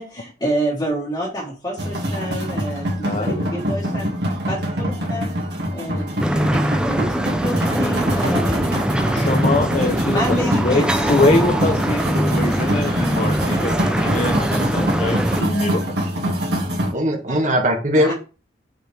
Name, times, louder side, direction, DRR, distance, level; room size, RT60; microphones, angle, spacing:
voice 1, 0.0-4.1 4.5-5.4 5.7-8.7 9.1-9.4 10.0-11.2 17.3-17.4 17.9-18.1, equal, 20° left, -5 dB, 1.6 m, -28 dB
sound 1, 1.8-16.9, equal, 65° right, 2.1 m, -24 dB
voice 2, 3.0-3.5 9.1-10.4 10.6-16.1, left 2 dB, 35° left, 5 dB, 0.6 m, -23 dB
sound 2, 6.2-15.4, right 1 dB, 5° right, 0.5 m, -22 dB
voice 3, 16.9-18.1, equal, 45° right, 2 dB, 1.7 m, -19 dB
6.1 x 4.8 x 3.4 m, 0.33 s
head